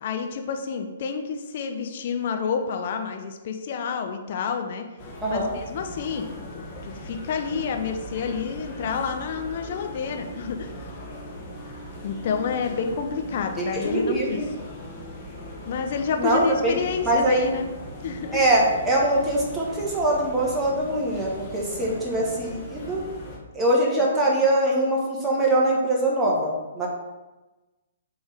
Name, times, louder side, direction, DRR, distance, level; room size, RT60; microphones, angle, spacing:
voice 1, 0.0-4.8 5.3-10.9 12.0-14.4 15.7-17.7 18.0-18.4 21.8-22.0, left 6 dB, 45° left, 5 dB, 0.7 m, -29 dB
sound 1, 5.0-23.4, equal, 20° left, 1.6 m, -39 dB
voice 2, 5.2-5.5 13.6-14.5 16.2-16.8 17.0-17.6 18.3-23.0 23.5-26.9, right 1 dB, 10° right, -4 dB, 1.4 m, -23 dB
7.9 x 3.6 x 3.5 m, 1.1 s
figure-of-eight pair, 120°, 0 cm